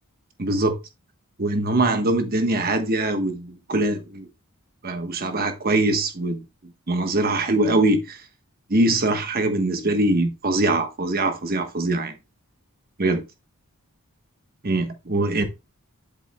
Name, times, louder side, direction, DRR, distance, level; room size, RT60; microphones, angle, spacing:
voice 1, 0.4-0.8 1.4-4.3 4.8-6.4 6.9-8.2 8.7-12.1 13.0-13.2 14.6-15.4, right 2 dB, 45° right, 1.1 m, -22 dB
7.7 x 7.6 x 2.2 m
head